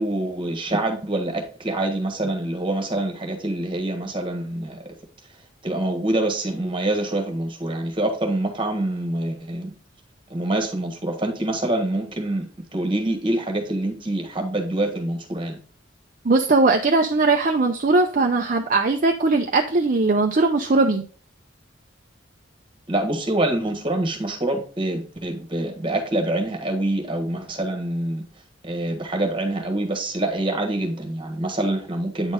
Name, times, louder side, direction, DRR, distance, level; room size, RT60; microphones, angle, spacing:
voice 1, 0.0-4.8 5.6-9.7 10.3-15.6 22.9-28.2 28.6-32.3, right 1 dB, 25° right, 3 dB, 1.5 m, -25 dB
voice 2, 16.2-21.0, right 3 dB, 40° right, 3 dB, 0.5 m, -19 dB
8.9 x 4.2 x 3.6 m, 0.41 s
head